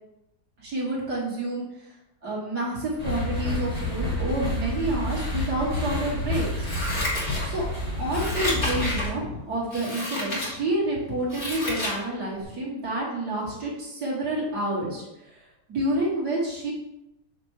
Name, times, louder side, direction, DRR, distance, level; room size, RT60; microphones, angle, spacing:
voice 1, 0.6-1.7 2.2-6.7 7.4-7.7 8.0-15.4 15.7-16.7, right 1 dB, 80° right, -5 dB, 2.6 m, -29 dB
sound 1, 3.0-9.1, left 1 dB, 20° right, 3.0 m, -29 dB
Scissors, 6.6-7.7 8.1-9.1 9.7-10.5 11.0-12.0 12.4-12.5, left 1 dB, 40° left, 3.0 m, -30 dB
7.0 x 6.3 x 3.2 m, 0.90 s
omnidirectional pair, 1.7 m